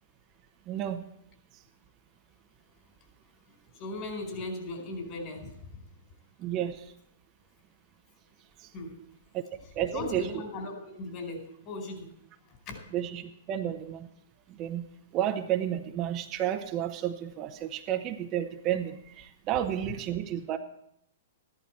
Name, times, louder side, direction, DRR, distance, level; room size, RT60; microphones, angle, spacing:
voice 1, 0.7-1.0 6.4-6.9 8.6-8.7 9.3-10.3 12.9-14.1 14.5-14.9 15.1-20.6, right 11 dB, 35° right, 6 dB, 0.9 m, -31 dB
voice 2, 3.7-5.5 8.7-8.9 9.9-12.1 12.7-12.8, left 2 dB, 40° left, 3 dB, 4.4 m, -37 dB
14.0 x 11.5 x 4.5 m, 0.75 s
hypercardioid pair, 125°, 0 cm